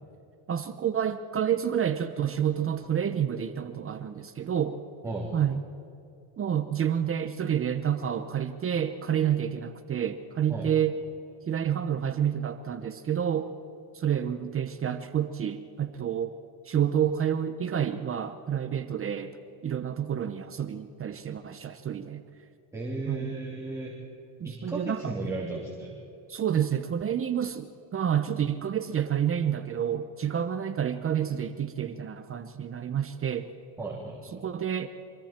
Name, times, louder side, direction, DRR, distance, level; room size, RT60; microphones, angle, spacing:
voice 1, 0.5-4.8 5.3-5.6 6.4-11.0 11.5-13.5 13.9-16.4 16.7-19.4 19.6-22.2 23.1-23.3 24.4-25.1 25.4-25.5 26.3-33.5 34.3-34.9, right 9 dB, 25° right, 9 dB, 0.9 m, -29 dB
voice 2, 22.7-23.9 24.4-26.0 33.8-34.4, right 3 dB, 5° right, -6 dB, 3.1 m, -35 dB
26.5 x 22.0 x 4.5 m, 2.7 s
cardioid pair, 140°, 48 cm